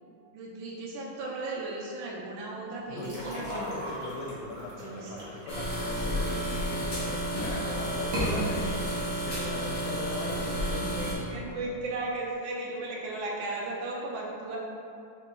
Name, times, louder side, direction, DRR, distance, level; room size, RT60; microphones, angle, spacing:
voice 1, 0.3-3.5 4.8-5.1 5.9-6.2 11.0-14.6, right 2 dB, 85° right, -4 dB, 1.4 m, -36 dB
voice 2, 2.9-11.4, left 2 dB, 90° left, -1 dB, 1.3 m, -39 dB
sound 1, 3.0-6.8 7.2-7.6 8.0-8.3, equal, 55° right, 1.0 m, -37 dB
sound 2, 5.5-11.1, right 1 dB, 45° left, 1.1 m, -31 dB
3.8 x 2.9 x 2.3 m, 2.5 s
omnidirectional pair, 2.1 m